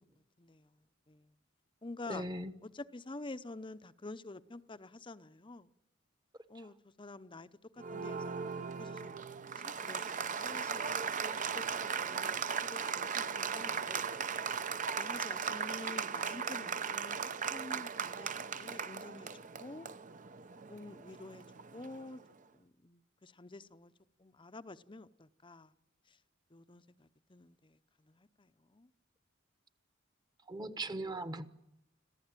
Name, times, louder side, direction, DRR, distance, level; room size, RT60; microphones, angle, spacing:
voice 1, 0.4-0.7 1.1-1.3 1.8-2.3 2.6-5.7 6.5-9.2 9.6-10.9 11.2-14.1 14.4-14.5 15.0-17.2 17.5-19.3 19.6-19.9 20.7-21.4 21.7-22.2 22.5-23.9 24.2-25.7 26.1-26.2 26.5-28.9, left 2 dB, 25° left, 0.7 m, -49 dB
voice 2, 2.1-2.5 30.5-31.5, right 2 dB, 20° right, 1.1 m, -39 dB
Applause, 7.8-22.1, right 6 dB, 40° right, 0.7 m, -38 dB
26.5 x 15.5 x 9.0 m
head